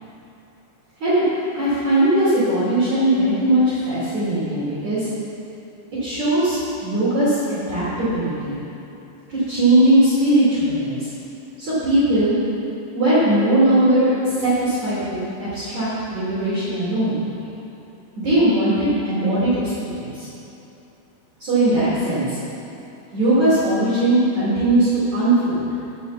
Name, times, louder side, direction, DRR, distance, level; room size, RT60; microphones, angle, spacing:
voice 1, 1.5-5.1 6.0-7.4 7.7-8.6 9.3-11.1 11.6-12.4 12.9-17.1 18.2-20.3 21.4-22.4 23.1-25.7, right 1 dB, 40° right, -12 dB, 3.8 m, -19 dB
15.0 x 5.7 x 7.3 m, 2.9 s
omnidirectional pair, 5.7 m